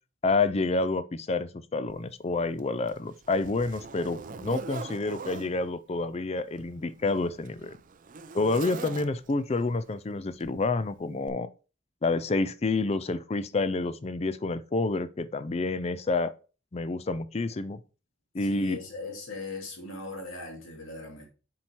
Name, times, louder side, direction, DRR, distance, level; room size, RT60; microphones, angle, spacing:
voice 1, 0.2-7.8 8.3-11.5 12.0-16.3 16.7-17.8 18.3-18.8, left 3 dB, 30° left, 0.4 m, -28 dB
Zipper (clothing), 1.9-2.0 2.6-5.5 6.5-9.4 10.4-10.7 11.2-11.3, right 4 dB, 40° right, 0.5 m, -42 dB
voice 2, 18.5-21.3, left 2 dB, 85° left, 2.6 m, -39 dB
7.6 x 4.5 x 4.3 m
head